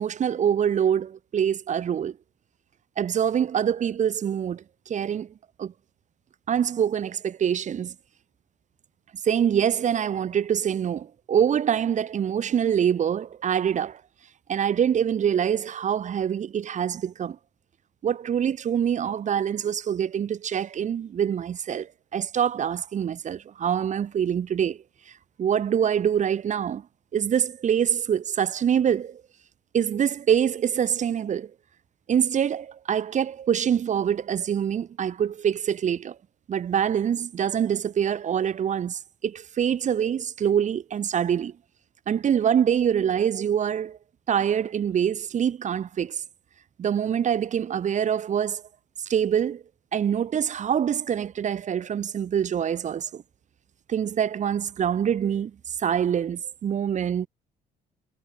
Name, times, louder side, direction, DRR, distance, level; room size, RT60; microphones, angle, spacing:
voice 1, 0.0-2.2 3.0-5.3 5.6-5.7 6.5-7.9 9.2-14.0 14.5-17.4 18.0-24.8 25.4-26.8 27.1-29.2 29.7-31.5 32.1-36.2 36.5-41.5 42.1-44.0 44.3-46.2 46.8-48.6 49.0-49.6 49.9-53.2 53.9-55.5 55.8-57.3, right 8 dB, 45° right, 2.4 m, -25 dB
cardioid pair, 110°, 17 cm